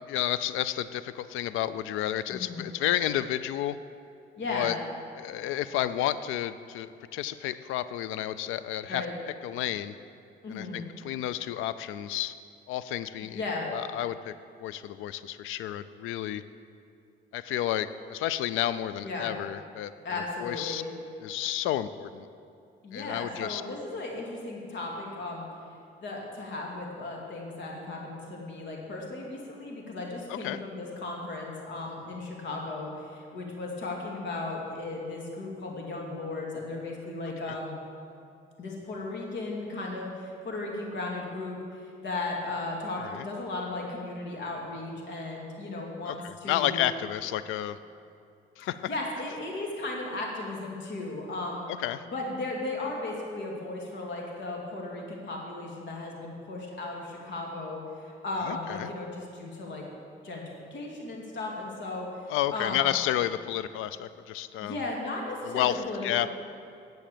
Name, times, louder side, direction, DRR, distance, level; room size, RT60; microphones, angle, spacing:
voice 1, 0.1-3.8 4.5-4.8 5.2-9.0 9.4-10.0 10.5-12.3 12.7-14.3 14.6-16.4 17.3-19.9 20.4-20.8 21.2-22.3 22.9-23.6 30.3-30.6 37.5-37.6 43.0-43.2 46.1-47.8 48.6-48.8 51.8-52.0 58.4-58.9 62.3-64.8 65.4-66.3, left 12 dB, 90° left, 14 dB, 0.5 m, -31 dB
voice 2, 2.3-2.7 4.4-4.7 8.9-9.1 10.4-10.8 13.2-13.7 19.0-19.3 20.0-20.9 22.8-25.5 26.0-37.8 38.6-46.8 48.6-51.7 52.1-59.9 60.2-60.4 60.7-62.9 64.6-66.2, left 2 dB, 65° left, -1 dB, 2.4 m, -36 dB
10.5 x 7.7 x 6.8 m, 2.6 s
cardioid pair, 90°, 20 cm